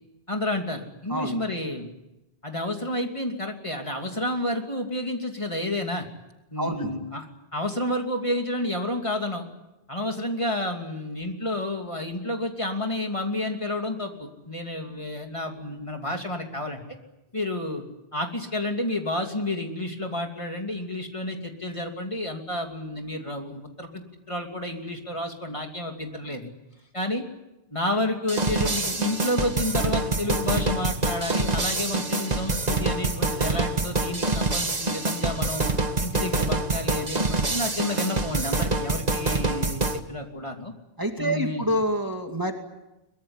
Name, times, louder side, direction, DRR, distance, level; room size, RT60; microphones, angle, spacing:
voice 1, 0.3-1.9 2.4-6.1 6.5-9.4 9.9-16.8 17.3-17.8 18.1-26.5 26.9-27.2 27.7-35.7 36.0-40.7 41.2-41.6, left 1 dB, 30° left, 3 dB, 2.9 m, -30 dB
voice 2, 6.6-6.9 41.0-42.5, equal, 20° right, 3 dB, 2.5 m, -27 dB
sound 1, 28.3-40.0, right 2 dB, 40° right, 1.8 m, -26 dB
23.5 x 22.5 x 9.8 m, 0.96 s
omnidirectional pair, 1.0 m